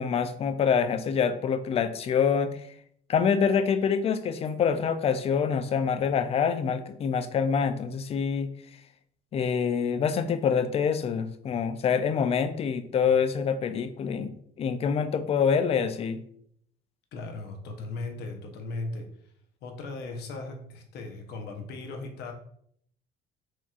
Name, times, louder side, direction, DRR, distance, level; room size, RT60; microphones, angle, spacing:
voice 1, 0.0-2.6 3.1-8.5 9.3-16.2, left 6 dB, 35° left, 10 dB, 0.3 m, -26 dB
voice 2, 17.1-19.1 19.6-22.3, left 3 dB, 75° left, 4 dB, 0.8 m, -37 dB
4.5 x 2.9 x 2.4 m, 0.68 s
cardioid pair, 110°, 17 cm